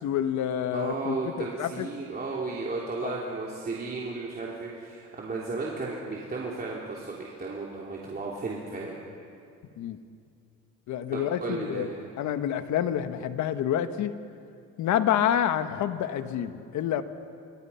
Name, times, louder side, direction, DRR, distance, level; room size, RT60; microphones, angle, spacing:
voice 1, 0.0-1.3 1.6-1.9 3.0-3.2 9.8-10.0 10.9-11.9 12.2-14.1 14.8-17.0, left 10 dB, 75° left, 9 dB, 1.4 m, -28 dB
voice 2, 0.7-8.9 11.1-12.0, right 3 dB, 30° right, -4 dB, 3.4 m, -34 dB
28.5 x 25.0 x 5.8 m, 2.4 s
cardioid pair, 110°, 29 cm